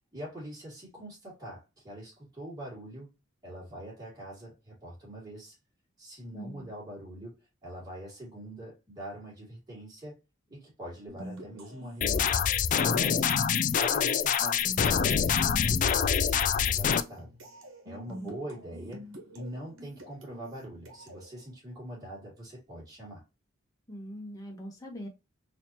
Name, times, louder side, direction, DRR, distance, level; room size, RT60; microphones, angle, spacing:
voice 1, 0.1-3.1 3.4-5.6 6.0-10.2 10.5-12.5 12.8-13.4 13.8-17.3 17.8-19.0 19.3-23.2, right 1 dB, 20° right, 2.3 m, -43 dB
voice 2, 6.3-6.7 18.2-18.4 23.9-25.1, equal, 20° left, 1.1 m, -42 dB
sound 1, 11.1-21.3, equal, 75° right, 1.2 m, -47 dB
sound 2, 12.0-17.0, left 7 dB, 40° left, 0.3 m, -25 dB
4.1 x 2.9 x 2.8 m
head